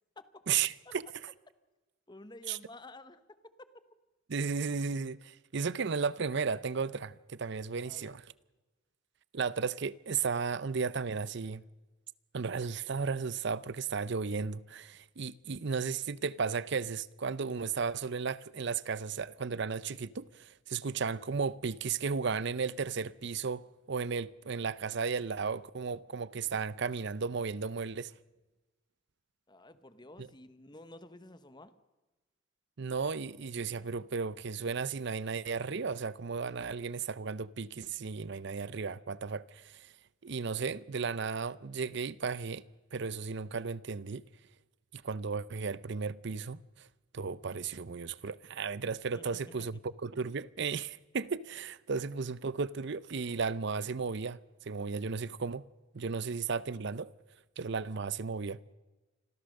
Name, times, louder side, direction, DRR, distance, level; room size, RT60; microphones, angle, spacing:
voice 1, 0.5-1.0 2.5-2.6 4.3-8.2 9.3-11.6 12.3-28.1 30.2-30.3 32.8-39.9 40.2-42.6 42.9-44.2 44.9-46.9 47.1-55.6 55.9-57.1 57.6-58.6, right 5 dB, 60° right, 0.6 m, -34 dB
voice 2, 2.1-3.5 7.8-8.2 29.5-31.7 49.1-49.4, left 2 dB, 20° left, 1.0 m, -51 dB
26.0 x 15.0 x 6.6 m
head